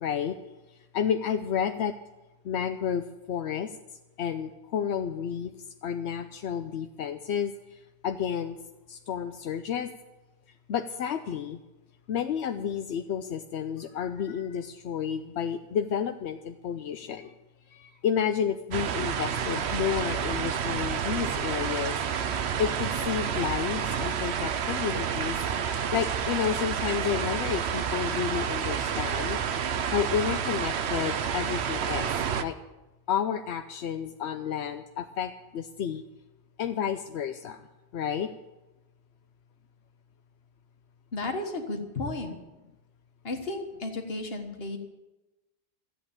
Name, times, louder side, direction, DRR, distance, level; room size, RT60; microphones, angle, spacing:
voice 1, 0.0-0.4 0.9-1.9 2.4-3.7 4.2-5.5 5.8-8.6 8.9-9.9 10.7-11.6 12.1-17.3 17.7-22.0 22.6-25.4 25.7-29.4 29.9-32.1 32.4-32.6 33.1-36.0 36.6-37.7 37.9-38.3, left 8 dB, 85° left, 7 dB, 0.9 m, -31 dB
sound 1, 18.7-32.4, right 7 dB, 75° right, 1.0 m, -29 dB
voice 2, 41.1-42.4 43.2-44.8, left 2 dB, 65° left, 4 dB, 1.8 m, -33 dB
13.5 x 8.3 x 8.8 m, 1.1 s
omnidirectional pair, 1.1 m